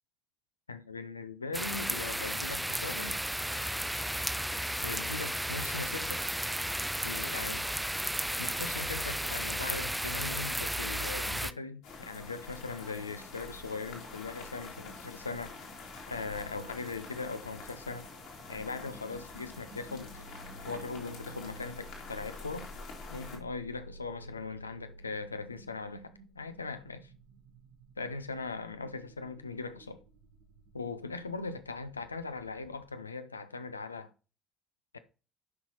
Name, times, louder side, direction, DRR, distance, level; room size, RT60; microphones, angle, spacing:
voice 1, 0.7-3.2 4.8-6.3 7.0-7.7 8.4-15.6 16.1-18.1 18.5-20.3 20.6-22.7 23.1-27.1 28.0-30.0 30.7-34.1 34.9-35.0, left 4 dB, 85° left, 0.5 m, -40 dB
sound 1, 1.5-11.5, equal, 5° right, 0.4 m, -34 dB
sound 2, 11.8-23.4, left 3 dB, 65° left, 2.4 m, -47 dB
sound 3, 17.0-32.9, right 1 dB, 60° right, 1.2 m, -53 dB
9.5 x 5.5 x 3.0 m
figure-of-eight pair, 50°, 0 cm